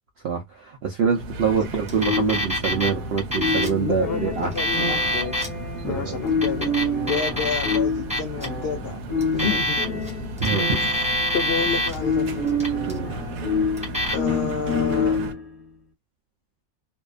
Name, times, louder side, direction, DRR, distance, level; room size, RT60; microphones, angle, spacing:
voice 1, 0.2-4.5 5.8-6.2 9.5-9.6 10.4-10.7 12.9-13.1, right 7 dB, 70° right, 0.6 m, -25 dB
sound 1, 1.1-15.3, right 1 dB, 85° right, 1.1 m, -35 dB
Alarm, 1.9-2.9 3.2-3.8 4.4-5.5 6.3-7.8 8.1-8.5 9.2-10.1 10.4-12.0 12.5-13.0 13.8-14.1, equal, 10° right, 0.3 m, -25 dB
sound 2, 2.0-15.5, left 3 dB, 30° left, 0.8 m, -28 dB
voice 2, 3.8-5.5 5.8-9.0 9.3-9.9 10.7-10.8 11.3-12.4 14.1-15.2, left 6 dB, 85° left, 0.5 m, -29 dB
2.6 x 2.2 x 2.4 m
omnidirectional pair, 1.6 m